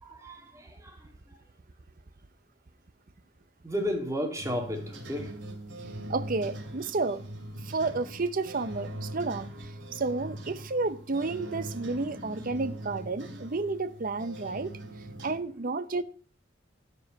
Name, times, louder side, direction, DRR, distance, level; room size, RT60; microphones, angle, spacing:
voice 1, 0.0-1.4 3.6-5.4, equal, 15° right, 2.7 m, -34 dB
sound 1, 4.4-15.4, right 1 dB, 90° right, 2.6 m, -41 dB
voice 2, 6.1-7.2 7.6-14.8 15.2-16.0, right 3 dB, 50° right, 0.7 m, -31 dB
12.0 x 5.6 x 7.5 m
head